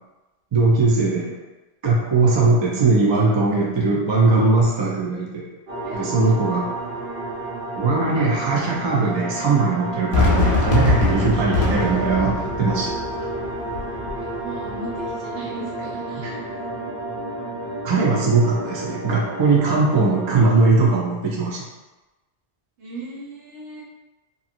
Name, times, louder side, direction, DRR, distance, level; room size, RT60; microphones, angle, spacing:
voice 1, 0.5-1.3 1.8-5.5 5.9-6.7 7.8-12.9 16.2-16.3 17.8-21.6, right 3 dB, 35° right, -4 dB, 0.4 m, -19 dB
sound 1, 5.7-20.4, right 2 dB, 55° right, 1.1 m, -31 dB
voice 2, 5.8-6.4 11.3-11.7 14.2-16.6 22.8-23.8, right 2 dB, 80° right, -6 dB, 1.2 m, -37 dB
Fireworks, 10.1-15.2, left 3 dB, 55° left, 0.8 m, -23 dB
2.8 x 2.6 x 2.5 m, 1.1 s
omnidirectional pair, 1.2 m